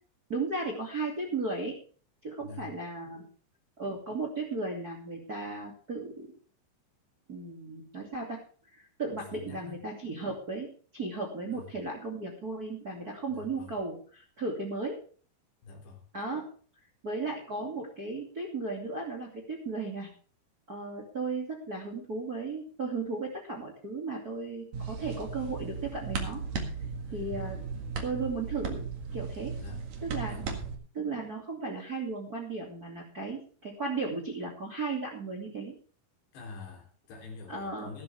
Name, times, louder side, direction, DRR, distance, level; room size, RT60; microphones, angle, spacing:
voice 1, 0.3-1.8 2.2-3.3 3.8-6.3 7.3-15.0 16.1-16.5 17.0-20.1 20.7-26.4 27.1-27.6 28.0-28.8 29.1-29.5 30.0-30.5 30.9-35.7 37.5-37.9, right 3 dB, 30° right, 0 dB, 2.1 m, -35 dB
voice 2, 2.4-2.7 9.1-9.8 11.5-11.8 13.3-13.8 15.6-16.1 27.1-27.5 29.5-29.9 30.3-30.7 36.3-38.0, left 4 dB, 70° left, 2 dB, 5.4 m, -45 dB
sound 1, 24.7-30.8, right 5 dB, 50° right, 2.6 m, -36 dB
15.0 x 12.5 x 3.4 m, 0.42 s
omnidirectional pair, 5.2 m